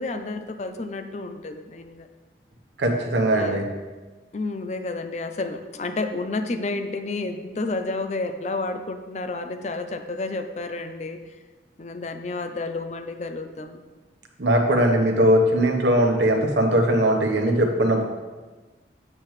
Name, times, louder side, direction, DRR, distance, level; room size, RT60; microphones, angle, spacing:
voice 1, 0.0-2.1 3.3-3.7 4.3-11.2 11.8-13.8, left 3 dB, 40° left, 8 dB, 0.5 m, -30 dB
voice 2, 2.8-3.6 14.4-18.0, right 1 dB, 75° right, 1 dB, 1.0 m, -20 dB
7.5 x 6.4 x 3.2 m, 1.3 s
head